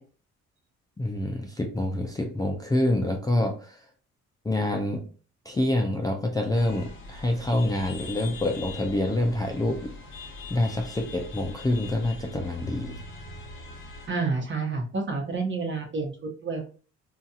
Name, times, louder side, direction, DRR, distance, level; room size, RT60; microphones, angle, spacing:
voice 1, 1.0-3.8 4.4-5.0 5.5-9.9 10.5-13.0, left 1 dB, 15° left, 2 dB, 0.4 m, -26 dB
sound 1, 6.5-14.1, left 2 dB, 40° left, 0.9 m, -42 dB
voice 2, 14.1-16.7, right 4 dB, 40° right, 2 dB, 0.9 m, -29 dB
2.8 x 2.4 x 2.3 m, 0.38 s
cardioid pair, 90°, 30 cm